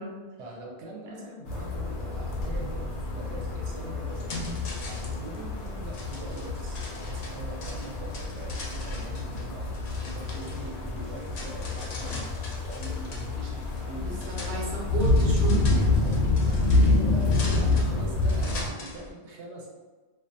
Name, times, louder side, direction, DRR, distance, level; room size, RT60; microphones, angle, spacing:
voice 1, 0.4-4.4 4.8-9.6 10.0-12.2 12.6-14.6 15.9-19.7, right 1 dB, 85° right, -2 dB, 0.9 m, -42 dB
sound 1, 1.5-18.7, left 2 dB, 90° left, 0.9 m, -28 dB
sound 2, 4.1-19.1, left 2 dB, 55° left, 0.4 m, -41 dB
voice 2, 14.5-16.0, right 1 dB, 50° right, -3 dB, 0.7 m, -34 dB
2.4 x 2.2 x 2.6 m, 1.3 s
omnidirectional pair, 1.2 m